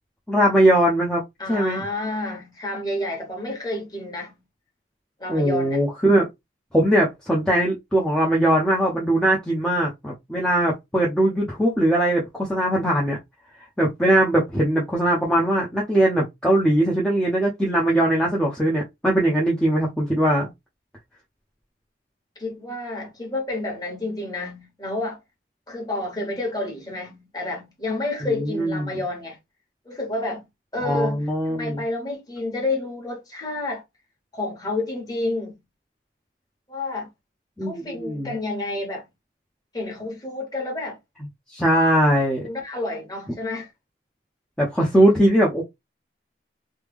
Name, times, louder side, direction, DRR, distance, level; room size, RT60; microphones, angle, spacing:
voice 1, 0.3-1.2 1.5-1.8 5.3-6.3 6.7-13.2 13.8-20.5 28.2-28.9 30.8-31.8 37.6-38.3 41.5-42.4 44.6-45.6, right 1 dB, 5° left, 0.7 m, -20 dB
voice 2, 1.4-4.3 5.2-5.8 22.4-25.2 25.7-29.4 29.8-30.4 30.7-33.8 34.3-35.6 36.7-37.1 37.6-39.0 39.7-41.0 42.4-43.7, left 2 dB, 20° left, 1.3 m, -30 dB
3.3 x 2.2 x 3.4 m
head